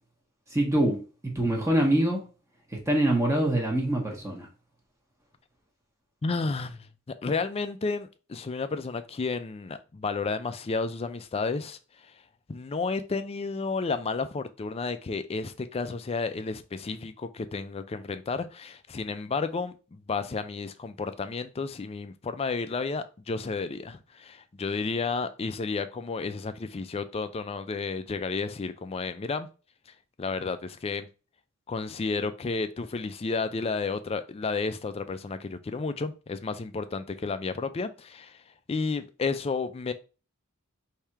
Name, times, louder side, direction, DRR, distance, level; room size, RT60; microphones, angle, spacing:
voice 1, 0.5-2.2 2.9-4.5, right 1 dB, 15° right, 0.9 m, -25 dB
voice 2, 6.2-12.1 12.5-29.5 30.2-31.1 31.7-38.4 38.7-39.9, left 4 dB, 30° left, 0.4 m, -32 dB
3.5 x 2.8 x 4.5 m
head